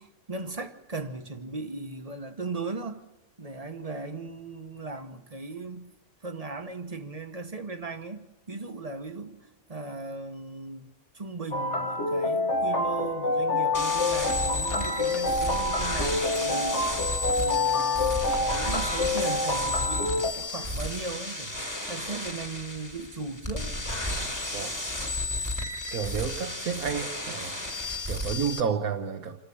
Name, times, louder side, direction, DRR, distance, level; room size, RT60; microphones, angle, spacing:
voice 1, 0.0-3.0 3.4-5.9 6.2-10.9 11.1-21.5 21.8-23.8, right 3 dB, 30° right, 1.2 m, -37 dB
sound 1, 11.5-20.3, left 2 dB, 55° left, 1.6 m, -27 dB
sound 2, 13.7-28.6, left 2 dB, 15° left, 1.5 m, -33 dB
sound 3, 13.9-17.9 18.3-18.5 18.9-19.3, left 4 dB, 80° left, 2.1 m, -45 dB
voice 2, 25.9-27.6 28.1-29.4, right 6 dB, 80° right, 1.6 m, -30 dB
27.5 x 13.0 x 8.6 m
omnidirectional pair, 1.5 m